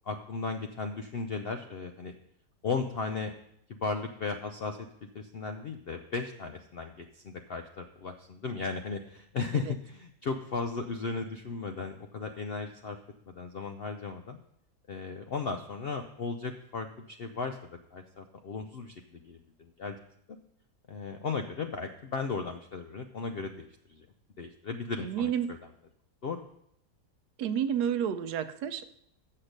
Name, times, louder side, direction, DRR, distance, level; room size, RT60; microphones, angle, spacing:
voice 1, 0.1-2.1 2.6-3.3 3.7-4.8 5.1-13.0 13.3-14.4 14.9-17.6 17.9-20.0 20.9-24.1 24.4-25.6 26.2-26.4, left 4 dB, 75° left, 6 dB, 0.5 m, -36 dB
voice 2, 25.0-25.5 27.4-28.9, right 8 dB, 90° right, 13 dB, 1.2 m, -30 dB
7.7 x 6.6 x 6.4 m, 0.74 s
omnidirectional pair, 1.7 m